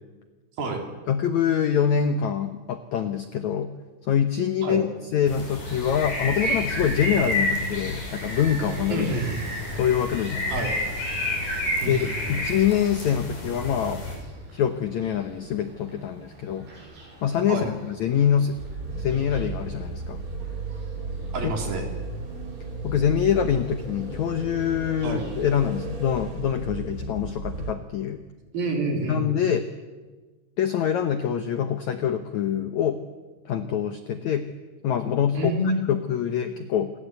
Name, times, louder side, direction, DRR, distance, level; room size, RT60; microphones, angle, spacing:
voice 1, 1.1-3.7 4.1-9.1 9.7-10.6 11.8-14.0 14.5-16.7 17.2-18.6 19.0-20.2 21.4-21.5 22.8-28.2 29.1-29.7 30.6-33.0 33.4-34.5 34.8-35.5 35.9-36.9, left 8 dB, 85° left, 8 dB, 1.6 m, -25 dB
sound 1, 5.3-14.2, left 1 dB, 50° left, 8.1 m, -30 dB
Bird vocalization bird call bird song, 8.0-25.6, right 2 dB, 75° right, 10.5 m, -45 dB
voice 2, 8.9-9.4 10.5-10.7 11.8-12.3 17.5-17.7 21.3-21.8 25.0-25.2 28.5-29.3 35.4-35.9, right 2 dB, 60° right, 2 dB, 5.5 m, -28 dB
sound 2, 18.6-27.7, right 3 dB, 25° right, 2.2 m, -34 dB
28.0 x 22.0 x 8.3 m, 1.3 s
omnidirectional pair, 4.9 m